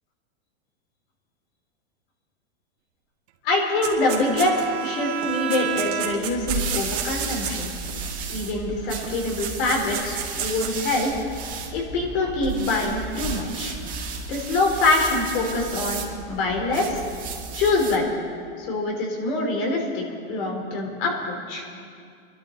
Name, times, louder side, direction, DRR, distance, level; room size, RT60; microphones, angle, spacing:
voice 1, 3.4-7.7 8.3-11.2 11.7-13.8 14.3-17.0 17.5-18.1 18.6-21.6, left 2 dB, 55° left, 0 dB, 3.9 m, -25 dB
Bowed string instrument, 3.5-6.6, right 8 dB, 80° right, 1.4 m, -31 dB
sound 1, 3.8-4.8 5.2-7.9 9.0-9.1 9.4-10.7, right 10 dB, 40° right, 2.3 m, -32 dB
sound 2, 6.2-18.1, right 4 dB, 25° right, 2.0 m, -33 dB
25.5 x 12.5 x 4.0 m, 2.3 s
supercardioid pair, 155°, 33 cm